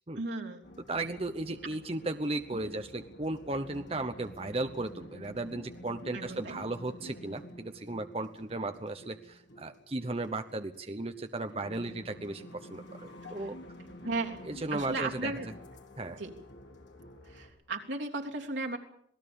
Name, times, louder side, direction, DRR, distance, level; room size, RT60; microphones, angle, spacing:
voice 1, 0.2-0.6 2.6-2.8 6.1-6.6 13.2-13.5 14.0-14.4 14.7-15.5 16.2-16.3 17.3-18.8, right 3 dB, 85° right, 2 dB, 3.2 m, -36 dB
sound 1, 0.6-17.5, left 1 dB, 80° left, 3.4 m, -49 dB
voice 2, 0.9-13.6 14.4-15.3 16.0-16.2, right 2 dB, 30° right, 8 dB, 0.9 m, -35 dB
27.0 x 18.5 x 7.1 m, 0.69 s
head